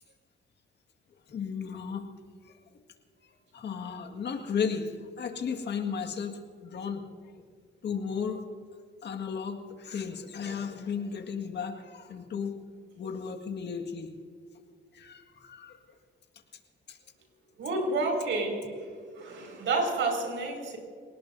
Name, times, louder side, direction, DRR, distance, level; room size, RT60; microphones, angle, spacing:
voice 1, 1.3-2.1 3.5-7.2 7.8-8.5 9.0-12.6 13.0-14.1 14.9-15.8 16.9-17.0, left 6 dB, 60° left, 4 dB, 1.9 m, -34 dB
voice 2, 17.6-20.8, right 3 dB, 70° right, 3 dB, 5.6 m, -30 dB
28.0 x 18.0 x 2.7 m, 2.1 s
cardioid pair, 90°, 20 cm